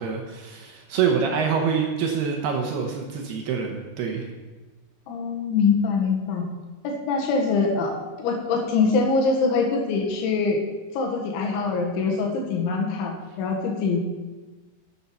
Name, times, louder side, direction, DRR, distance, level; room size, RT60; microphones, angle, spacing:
voice 1, 0.0-4.3, right 6 dB, 75° right, 2 dB, 2.7 m, -26 dB
voice 2, 5.1-6.4 6.8-10.6 10.9-14.1, left 4 dB, 75° left, 1 dB, 3.9 m, -24 dB
12.0 x 8.5 x 5.7 m, 1.2 s
omnidirectional pair, 5.5 m